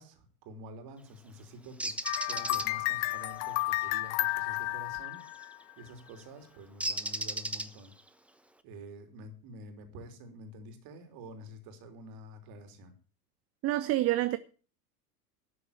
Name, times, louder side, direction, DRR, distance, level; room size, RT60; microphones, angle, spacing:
voice 1, 0.0-1.9 2.2-5.3 5.8-7.9 8.6-12.9, right 1 dB, 50° right, 3.3 m, -48 dB
Bird, 1.8-2.7 5.3-5.5 6.8-8.0, right 1 dB, 5° right, 1.0 m, -34 dB
sound 1, 2.0-5.8, left 20 dB, 50° left, 0.8 m, -32 dB
voice 2, 13.6-14.4, right 15 dB, 30° right, 0.6 m, -27 dB
12.5 x 6.9 x 8.3 m
hypercardioid pair, 90°, 47 cm